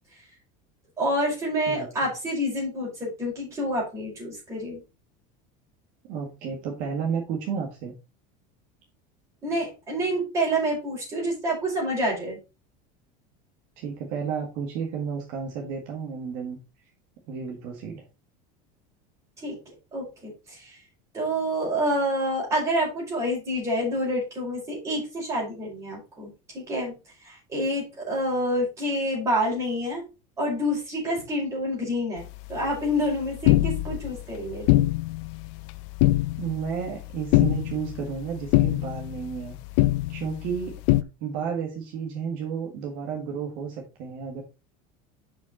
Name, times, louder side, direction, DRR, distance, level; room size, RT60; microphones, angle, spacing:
voice 1, 1.0-4.8 9.4-12.4 19.4-19.6 19.9-20.7 21.1-26.9 27.2-30.0 30.4-34.7, equal, 15° right, -3 dB, 5.0 m, -28 dB
voice 2, 6.1-7.9 13.8-16.6 17.3-18.1 36.4-39.6 40.1-40.8 41.2-44.4, right 6 dB, 55° right, 1 dB, 1.8 m, -32 dB
sound 1, 32.2-41.0, left 17 dB, 60° left, 0.5 m, -25 dB
7.3 x 5.8 x 4.2 m, 0.28 s
cardioid pair, 175°, 18 cm